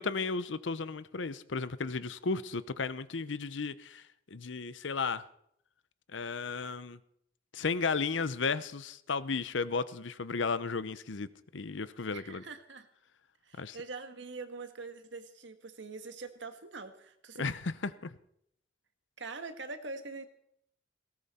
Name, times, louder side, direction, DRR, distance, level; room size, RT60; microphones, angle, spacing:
voice 1, 0.0-4.0 4.3-5.2 6.1-7.0 7.5-12.4 13.6-13.8 17.4-18.1, left 4 dB, 75° left, 15 dB, 0.8 m, -34 dB
voice 2, 12.1-12.9 13.5-17.5 19.2-20.3, right 3 dB, 70° right, 8 dB, 1.6 m, -43 dB
18.5 x 18.0 x 4.3 m, 0.74 s
head